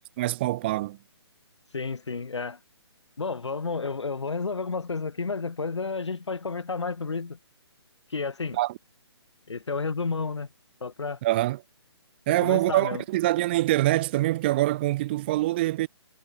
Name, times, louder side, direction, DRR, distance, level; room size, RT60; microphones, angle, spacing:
voice 1, 0.2-1.0 8.5-8.7 11.2-11.6 12.3-15.9, right 17 dB, 25° right, 0.4 m, -24 dB
voice 2, 1.7-2.6 3.2-7.4 8.1-8.6 9.5-10.5 10.8-11.2 12.3-13.0, left 4 dB, 85° left, 1.6 m, -31 dB
hypercardioid pair, 150°, 15 cm